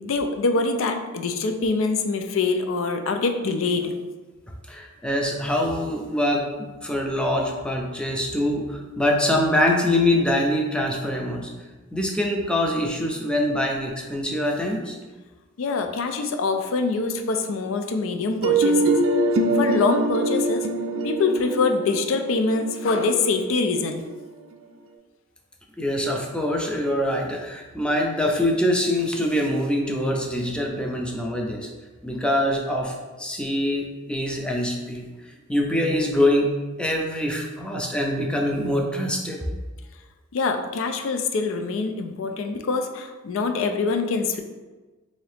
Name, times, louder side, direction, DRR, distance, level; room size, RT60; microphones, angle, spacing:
voice 1, 0.0-4.0 15.6-19.0 19.5-20.7 21.0-24.1 40.3-44.4, left 4 dB, 75° left, 6 dB, 0.4 m, -24 dB
voice 2, 4.7-6.5 6.8-11.5 11.9-15.0 25.8-31.7 32.0-35.1 35.5-36.5 36.8-39.4, left 1 dB, 5° left, 1 dB, 0.4 m, -24 dB
sound 1, 18.4-24.2, right 2 dB, 90° right, 0.4 m, -24 dB
3.8 x 2.7 x 3.3 m, 1.3 s
head